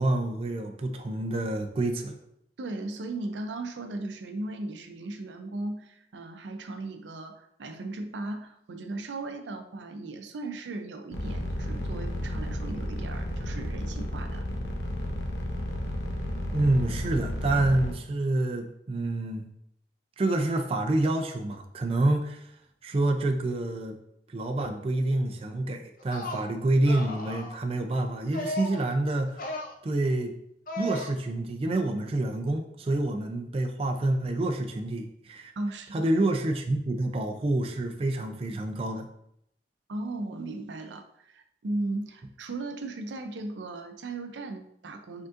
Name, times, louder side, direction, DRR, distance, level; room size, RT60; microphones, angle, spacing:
voice 1, 0.0-2.2 16.5-19.5 20.2-22.5 22.8-24.0 24.3-29.5 29.8-30.3 30.8-35.5 35.9-39.1, right 2 dB, 35° right, 4 dB, 0.3 m, -27 dB
voice 2, 2.6-14.4 35.6-36.1 39.9-45.3, right 2 dB, 85° right, 7 dB, 0.5 m, -37 dB
sound 1, 11.1-17.9, left 1 dB, 80° left, 0.8 m, -32 dB
sound 2, 26.0-26.5 26.9-27.6 28.3-28.9 29.3-29.7 30.7-31.1, left 1 dB, 50° left, 0.5 m, -35 dB
5.0 x 3.7 x 2.5 m, 0.76 s
head